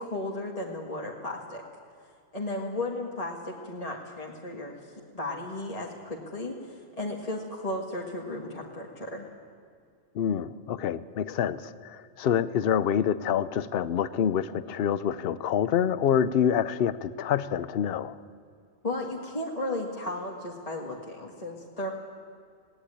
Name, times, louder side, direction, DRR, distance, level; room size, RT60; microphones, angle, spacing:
voice 1, 0.0-1.6 2.3-4.8 5.1-9.3 18.8-21.9, left 2 dB, 30° left, -2 dB, 1.7 m, -34 dB
voice 2, 10.1-18.2, left 9 dB, 55° left, 15 dB, 0.8 m, -27 dB
18.5 x 17.5 x 9.9 m, 2.3 s
omnidirectional pair, 1.3 m